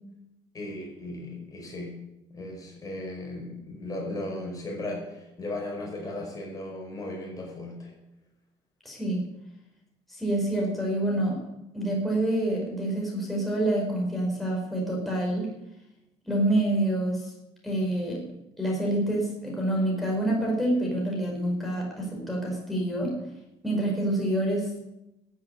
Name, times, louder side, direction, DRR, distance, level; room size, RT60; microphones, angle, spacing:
voice 1, 0.5-2.0 2.3-7.9, left 1 dB, 30° left, 0 dB, 5.2 m, -36 dB
voice 2, 8.9-9.2 10.1-11.4 11.7-15.5 16.3-17.3 17.6-18.2 18.6-23.1 23.6-24.7, right 1 dB, ahead, -3 dB, 5.2 m, -27 dB
14.0 x 8.4 x 9.6 m, 0.90 s
cardioid pair, 120°, 12 cm